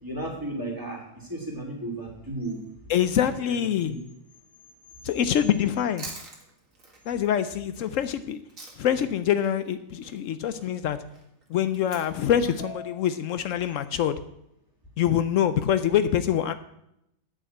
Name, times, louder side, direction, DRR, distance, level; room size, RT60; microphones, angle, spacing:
voice 1, 0.0-2.6 3.5-4.0 12.6-13.0, right 1 dB, 15° right, -1 dB, 2.9 m, -34 dB
voice 2, 2.9-3.9 5.0-6.1 7.1-8.4 8.8-11.0 11.5-14.1 15.0-16.5, left 10 dB, 75° left, 11 dB, 1.0 m, -25 dB
Chewing mastication, 5.6-9.1 9.4-13.7, right 3 dB, 80° right, 2.4 m, -46 dB
9.1 x 6.6 x 8.7 m, 0.80 s
omnidirectional pair, 1.4 m